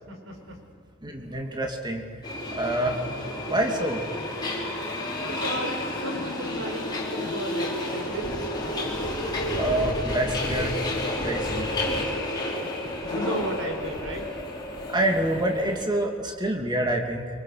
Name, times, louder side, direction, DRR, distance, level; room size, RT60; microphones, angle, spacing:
voice 1, 0.1-0.6 5.3-8.5 12.6-12.7 13.0-14.3, right 1 dB, 85° right, 3 dB, 4.5 m, -34 dB
voice 2, 1.0-2.0 2.6-3.0 3.5-4.0 9.6-10.7 11.3-11.7 14.9-17.2, right 1 dB, 20° right, 2 dB, 2.7 m, -26 dB
Subway metro underground, 2.2-15.8, left 1 dB, 20° left, 4.5 m, -31 dB
24.5 x 24.0 x 6.7 m, 2.3 s
head